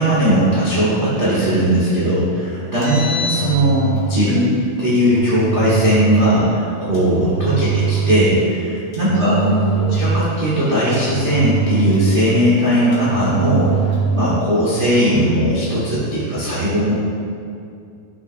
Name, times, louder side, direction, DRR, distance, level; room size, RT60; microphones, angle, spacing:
voice 1, 0.0-4.5 4.8-9.4 9.9-13.7 14.1-16.9, equal, 65° right, -9 dB, 0.6 m, -18 dB
Engine, 2.6-4.1 4.9-6.1 6.9-8.2 8.9-10.2 10.9-12.3 12.9-14.1, right 6 dB, 55° left, 1.8 m, -23 dB
voice 2, 2.8-3.1 7.5-7.9 9.1-9.9 14.9-15.4, left 1 dB, 90° left, -5 dB, 1.4 m, -24 dB
11.0 x 6.2 x 2.6 m, 2.4 s
omnidirectional pair, 4.1 m